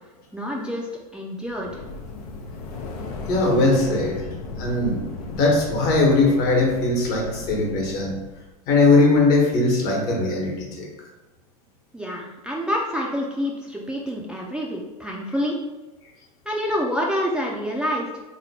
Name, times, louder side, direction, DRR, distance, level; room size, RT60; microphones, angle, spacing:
voice 1, 0.3-1.8 11.9-15.6 16.5-18.1, equal, 5° right, -3 dB, 0.4 m, -27 dB
sound 1, 1.5-8.5, left 3 dB, 80° left, 0.6 m, -36 dB
voice 2, 3.3-5.0 5.3-8.2 8.7-10.9, left 2 dB, 55° left, -1 dB, 1.1 m, -20 dB
2.9 x 2.2 x 4.1 m, 1.1 s
hypercardioid pair, 105°, 19 cm